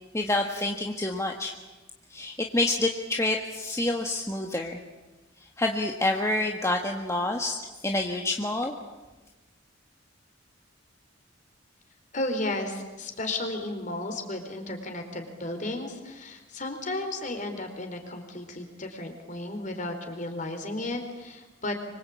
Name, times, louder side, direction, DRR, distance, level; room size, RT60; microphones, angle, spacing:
voice 1, 0.1-1.5 2.1-4.8 5.6-7.6 7.8-8.7, left 2 dB, 15° left, 2 dB, 1.6 m, -27 dB
voice 2, 12.1-21.8, left 2 dB, 40° left, 5 dB, 4.3 m, -34 dB
26.0 x 25.0 x 8.6 m, 1.2 s
head